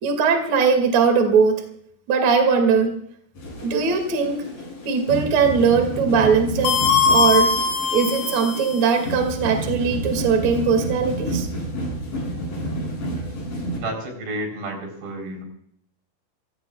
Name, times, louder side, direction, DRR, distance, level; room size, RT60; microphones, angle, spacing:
voice 1, 0.0-1.6 2.1-2.9 3.6-4.4 4.8-7.5 7.9-11.5, right 5 dB, 45° right, 5 dB, 3.3 m, -20 dB
sound 1, 3.3-13.8, right 1 dB, 60° left, 8.8 m, -30 dB
sound 2, 6.6-9.0, left 5 dB, 80° left, 4.0 m, -21 dB
voice 2, 13.7-15.4, right 1 dB, 75° right, 2 dB, 6.2 m, -31 dB
27.0 x 17.5 x 2.4 m, 0.67 s
omnidirectional pair, 4.8 m